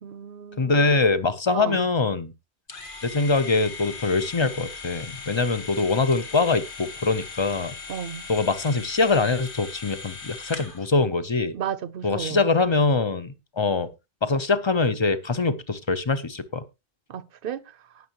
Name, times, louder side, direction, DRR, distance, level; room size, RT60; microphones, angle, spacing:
voice 1, 0.0-0.8 1.5-1.8 7.9-8.3 11.5-12.4 17.1-17.7, right 8 dB, 65° right, 0.9 m, -33 dB
voice 2, 0.6-2.3 3.0-7.7 8.3-11.5 12.0-13.9 14.2-16.6, left 3 dB, 30° left, 0.8 m, -23 dB
sound 1, 2.7-10.9, left 4 dB, 55° left, 1.6 m, -39 dB
19.0 x 6.6 x 2.9 m
omnidirectional pair, 1.0 m